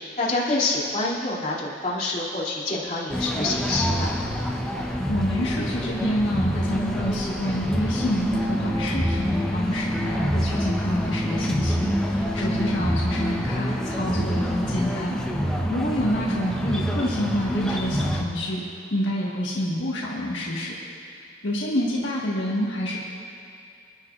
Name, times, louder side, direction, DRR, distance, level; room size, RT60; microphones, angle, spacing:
voice 1, 0.0-4.1, left 2 dB, 40° left, -6 dB, 2.7 m, -27 dB
sound 1, 3.1-18.2, equal, 5° left, 0.8 m, -26 dB
voice 2, 4.7-18.6 18.9-20.7 21.0-23.0, equal, 80° left, -4 dB, 1.5 m, -28 dB
28.0 x 10.5 x 2.5 m, 2.4 s
head